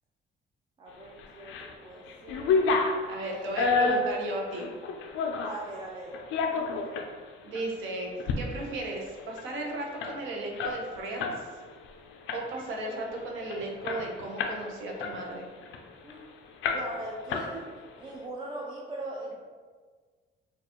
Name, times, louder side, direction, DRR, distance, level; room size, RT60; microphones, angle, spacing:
voice 1, 0.8-2.7 3.2-3.7 5.4-6.2 6.5-7.0 16.0-16.3 16.7-17.7 18.0-19.3, right 1 dB, 25° right, -4 dB, 0.3 m, -40 dB
sound 1, 1.2-1.7 2.0-5.6 6.1-7.1 7.5-7.7 8.1-8.4 8.7-8.8 9.1-11.4 11.7-11.9 12.3-12.7 13.2-13.3 13.5-14.6 15.0-16.2 16.6-17.0 17.3-17.9, left 4 dB, 85° left, 0.4 m, -29 dB
voice 2, 3.1-4.7 7.4-11.5 12.3-15.5, right 2 dB, 80° right, -1 dB, 0.8 m, -35 dB
4.5 x 2.4 x 2.9 m, 1.5 s
cardioid pair, 175°, 20 cm